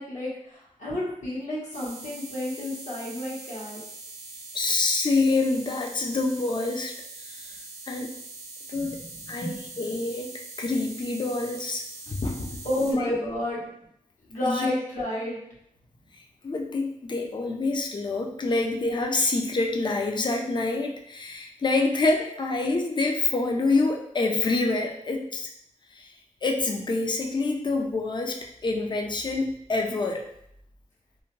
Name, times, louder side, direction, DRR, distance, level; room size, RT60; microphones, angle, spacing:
voice 1, 0.0-3.8 8.7-9.5 12.6-13.6 14.3-15.4, left 1 dB, 75° left, -7 dB, 1.1 m, -31 dB
sound 1, 1.7-12.9, right 3 dB, 60° right, 0.7 m, -43 dB
voice 2, 4.5-6.9 7.2-7.6 7.9-8.1 8.7-9.0 9.3-9.5 9.8-10.3 10.6-12.6 12.9-13.2 14.4-14.7 16.4-25.5 25.9-26.1 26.4-28.4 28.6-30.2, left 3 dB, 35° left, 1 dB, 0.4 m, -26 dB
2.6 x 2.1 x 3.0 m, 0.74 s
wide cardioid pair, 80°, 13 cm